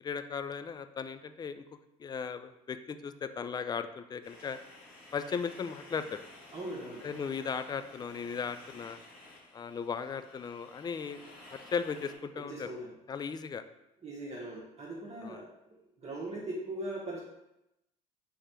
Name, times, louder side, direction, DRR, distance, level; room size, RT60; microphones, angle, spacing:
voice 1, 0.0-1.6 2.0-4.6 5.1-6.2 7.0-9.0 9.5-11.2 11.5-12.7 13.1-13.6 15.2-15.4, left 6 dB, 25° left, 10 dB, 0.3 m, -37 dB
sound 1, 4.2-12.1, left 2 dB, 60° left, 1.1 m, -53 dB
voice 2, 6.5-7.0 12.4-12.9 14.0-17.2, right 1 dB, 40° right, -6 dB, 1.2 m, -40 dB
3.5 x 3.2 x 4.3 m, 0.89 s
hypercardioid pair, 55°, 18 cm